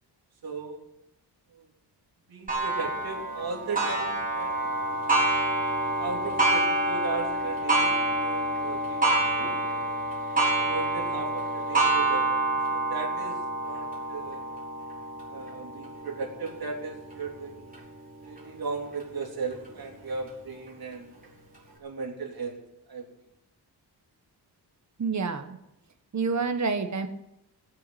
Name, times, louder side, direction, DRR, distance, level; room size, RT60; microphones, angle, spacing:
voice 1, 0.4-0.8 1.5-1.7 2.3-4.7 6.0-9.8 10.5-14.4 15.3-17.7 18.2-21.2 21.8-22.6 22.9-23.0, right 4 dB, 65° right, 0 dB, 3.6 m, -37 dB
Clock, 2.5-17.8 18.4-18.5 19.0-19.1 20.1-20.2, right 2 dB, 20° right, 4.2 m, -27 dB
voice 2, 25.0-25.6 26.1-27.1, right 4 dB, 45° right, 6 dB, 1.5 m, -28 dB
18.0 x 8.6 x 8.2 m, 0.87 s
wide cardioid pair, 170°, 39 cm